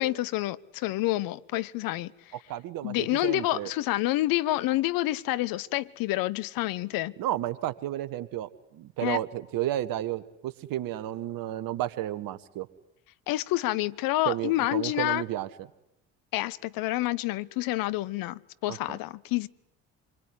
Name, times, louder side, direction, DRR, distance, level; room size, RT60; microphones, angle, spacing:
voice 1, 0.0-2.3 2.8-7.1 9.0-9.2 13.3-15.2 16.3-19.5, left 17 dB, 60° left, 1.1 m, -28 dB
voice 2, 2.5-3.7 7.2-12.7 14.3-15.5 18.7-19.0, right 13 dB, 60° right, 1.8 m, -32 dB
27.0 x 22.5 x 9.7 m
hypercardioid pair, 55°, 38 cm